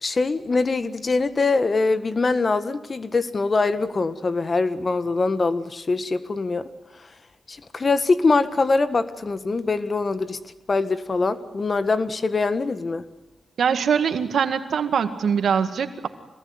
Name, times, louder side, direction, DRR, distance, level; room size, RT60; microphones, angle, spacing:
voice 1, 0.0-6.7 7.5-10.4 10.7-13.0, left 3 dB, 45° left, 12 dB, 1.6 m, -23 dB
voice 2, 13.6-16.1, right 7 dB, 80° right, 9 dB, 2.0 m, -22 dB
26.0 x 20.0 x 9.6 m, 1.0 s
cardioid pair, 55°, 0 cm